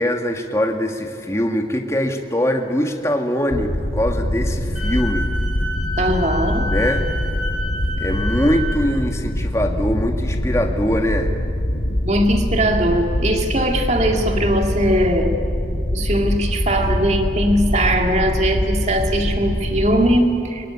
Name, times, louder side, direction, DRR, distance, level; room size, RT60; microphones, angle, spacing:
voice 1, 0.0-5.3 6.7-7.0 8.0-11.3, equal, 15° left, 3 dB, 1.7 m, -22 dB
sound 1, 3.5-20.2, equal, 75° left, 1.8 m, -23 dB
Wind instrument woodwind instrument, 4.8-8.8, left 1 dB, 5° right, 5.1 m, -29 dB
voice 2, 6.0-6.7 12.0-15.3 15.9-20.7, right 1 dB, 40° right, 4 dB, 2.1 m, -20 dB
23.0 x 22.5 x 9.9 m, 2.5 s
head